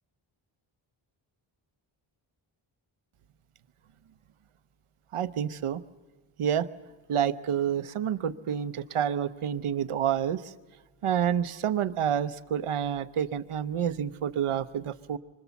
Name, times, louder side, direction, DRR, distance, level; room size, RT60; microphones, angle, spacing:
voice 1, 5.1-5.8 6.4-6.7 7.1-10.5 11.0-15.2, right 9 dB, 80° right, 14 dB, 0.9 m, -28 dB
25.5 x 25.0 x 7.1 m, 1.2 s
wide cardioid pair, 150°, 50 cm